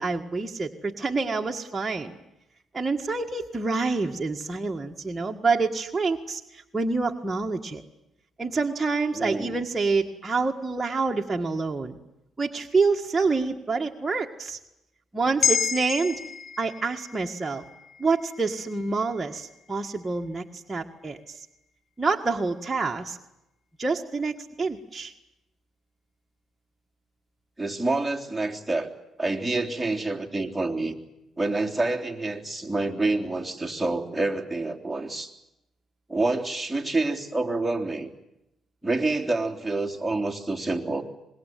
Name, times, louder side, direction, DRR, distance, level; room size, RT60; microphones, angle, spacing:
voice 1, 0.0-2.2 2.7-7.8 8.4-12.0 12.4-14.6 15.1-16.2 16.6-17.6 18.0-21.5 22.0-23.2 23.8-25.1, right 4 dB, 20° right, 1 dB, 1.8 m, -27 dB
voice 2, 9.1-9.6 27.6-28.9 29.2-31.0 31.4-35.3 36.1-38.1 38.8-41.0, right 2 dB, 5° right, 0 dB, 3.5 m, -27 dB
sound 1, 15.4-19.9 20.3-20.4, left 7 dB, 45° left, 0.9 m, -31 dB
25.0 x 21.5 x 9.4 m, 0.88 s
cardioid pair, 90°, 0 cm